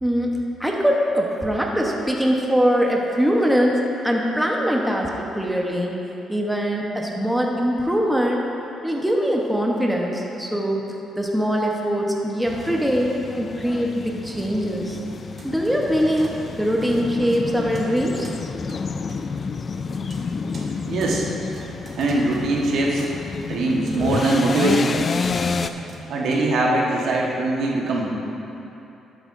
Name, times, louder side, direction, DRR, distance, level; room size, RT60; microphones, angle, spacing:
voice 1, 0.0-6.0 6.3-8.6 8.8-10.9 11.2-15.0 15.4-18.3, equal, 5° right, -1 dB, 1.1 m, -22 dB
sound 1, 12.5-25.7, left 5 dB, 40° left, 0.3 m, -30 dB
sound 2, 15.2-26.4, right 1 dB, 45° right, 1.6 m, -42 dB
voice 2, 20.8-21.3 22.0-23.1 23.4-25.0 26.1-28.1, right 2 dB, 75° right, -2 dB, 1.4 m, -21 dB
11.5 x 9.1 x 2.7 m, 3.0 s
cardioid pair, 90°, 0 cm